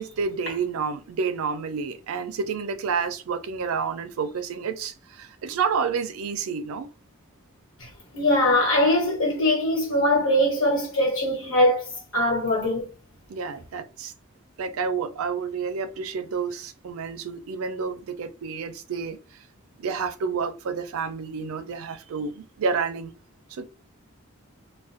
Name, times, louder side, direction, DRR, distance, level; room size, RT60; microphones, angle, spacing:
voice 1, 0.0-6.9 13.3-14.1 14.6-19.2 19.8-23.1 23.5-23.7, right 5 dB, 80° right, 0.4 m, -29 dB
voice 2, 7.8-12.9, left 1 dB, 70° left, 1.1 m, -22 dB
2.4 x 2.1 x 2.4 m
head